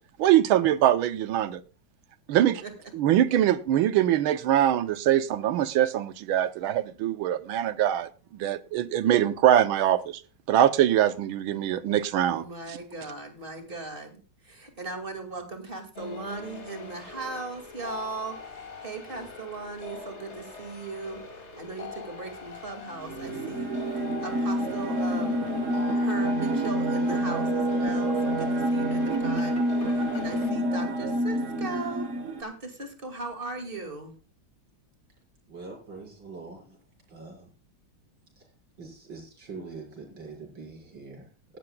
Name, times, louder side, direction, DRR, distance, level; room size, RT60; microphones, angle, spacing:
voice 1, 0.2-1.6 2.3-2.6 2.9-10.2 10.5-12.4, right 11 dB, 80° right, 13 dB, 1.6 m, -23 dB
voice 2, 12.3-18.5 18.8-21.2 21.6-23.7 24.2-25.4 25.9-32.1 32.4-34.1, right 3 dB, 25° right, 5 dB, 2.4 m, -38 dB
sound 1, 16.0-30.5, left 1 dB, 35° left, 2.0 m, -41 dB
sound 2, 23.2-32.4, right 1 dB, 40° right, 1.3 m, -27 dB
voice 3, 35.5-36.8 37.1-37.5 38.4-38.5 38.8-41.3, right 4 dB, 65° right, -2 dB, 6.0 m, -43 dB
17.5 x 12.0 x 2.3 m, 0.34 s
omnidirectional pair, 2.2 m